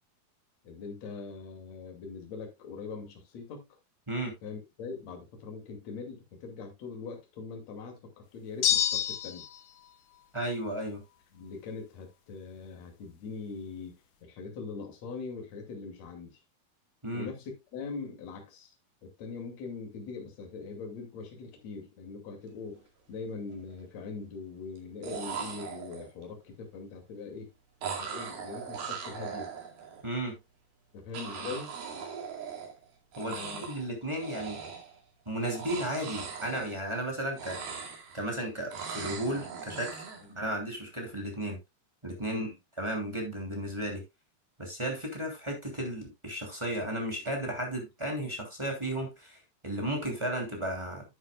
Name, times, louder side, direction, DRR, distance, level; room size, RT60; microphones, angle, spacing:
voice 1, 0.6-3.6 4.4-9.4 11.3-14.0 14.2-16.4 17.1-18.7 19.0-22.8 23.1-27.5 28.0-29.5 30.9-31.7 33.2-33.7 40.3-40.4 42.3-42.6, left 4 dB, 45° left, 3.3 m, -42 dB
sound 1, 8.6-9.6, left 11 dB, 65° left, 2.4 m, -27 dB
voice 2, 10.3-11.0 17.0-17.3 30.0-30.4 33.2-34.6 35.3-37.6 38.1-39.9 40.3-41.6 42.0-44.0 44.6-49.4 49.6-51.0, right 1 dB, 10° right, 2.4 m, -34 dB
sound 2, 22.6-22.8 23.1-23.7 24.8-24.9 25.0-26.2 27.8-30.0 31.1-32.9 33.1-33.9 34.2-35.0 35.4-37.1 37.3-38.3 38.7-40.2, right 6 dB, 70° right, 4.1 m, -40 dB
11.0 x 9.1 x 2.3 m
omnidirectional pair, 4.6 m